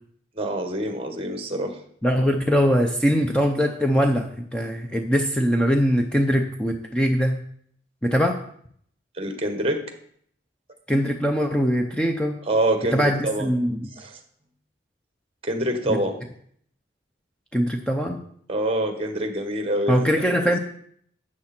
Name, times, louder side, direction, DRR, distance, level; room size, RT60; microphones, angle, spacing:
voice 1, 0.4-1.8 9.2-9.8 12.4-13.5 14.0-14.2 15.4-16.2 18.5-20.5, right 1 dB, 30° right, 6 dB, 1.6 m, -26 dB
voice 2, 2.0-7.4 8.0-8.4 10.9-12.4 12.9-13.9 15.9-16.0 17.5-18.2 19.9-20.6, equal, 5° left, 3 dB, 0.7 m, -22 dB
12.5 x 8.6 x 4.5 m, 0.63 s
head